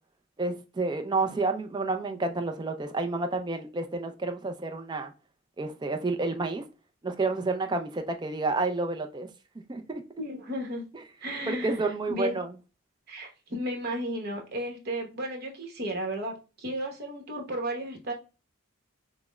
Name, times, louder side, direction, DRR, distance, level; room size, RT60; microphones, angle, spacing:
voice 1, 0.4-5.1 5.6-6.7 7.0-9.3 9.7-10.0 11.5-12.5, right 3 dB, 20° right, 0.4 m, -30 dB
voice 2, 10.2-10.9 11.2-11.8 12.1-12.4 13.1-18.1, right 1 dB, 50° right, 1.0 m, -34 dB
5.8 x 2.1 x 2.2 m
head